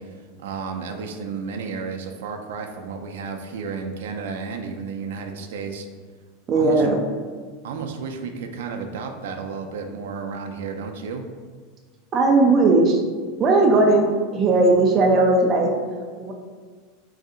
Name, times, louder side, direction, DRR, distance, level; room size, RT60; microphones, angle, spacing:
voice 1, 0.0-5.9 6.5-6.8 7.6-11.2, right 5 dB, 85° right, 4 dB, 0.4 m, -32 dB
voice 2, 6.5-7.0 12.1-13.0 13.4-15.7 16.2-16.3, right 2 dB, 25° right, 0 dB, 0.4 m, -17 dB
3.2 x 2.7 x 3.7 m, 1.5 s
supercardioid pair, 165°, 0 cm